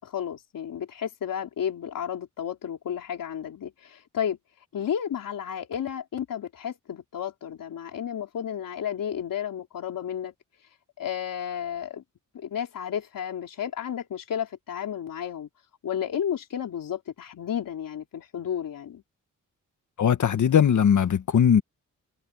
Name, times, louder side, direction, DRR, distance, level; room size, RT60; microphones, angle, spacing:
voice 1, 0.0-4.4 4.7-10.3 11.0-12.0 12.3-15.5 15.8-19.0, left 9 dB, 80° left, 3.7 m, -32 dB
voice 2, 20.0-21.6, left 8 dB, 65° left, 1.5 m, -20 dB
wide cardioid pair, 115°, 32 cm